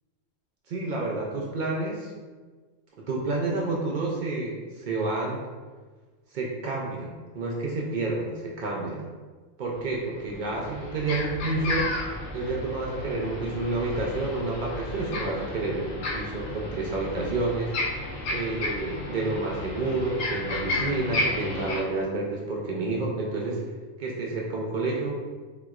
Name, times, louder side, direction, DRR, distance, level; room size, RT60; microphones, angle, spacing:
voice 1, 0.7-2.1 3.1-5.4 6.3-9.1 9.6-11.9 12.3-17.7 18.3-23.6 24.0-25.2, right 2 dB, 70° right, -3 dB, 0.4 m, -29 dB
sound 1, 10.2-21.8, left 2 dB, 80° left, 1.0 m, -33 dB
3.4 x 3.0 x 2.4 m, 1.4 s
omnidirectional pair, 1.3 m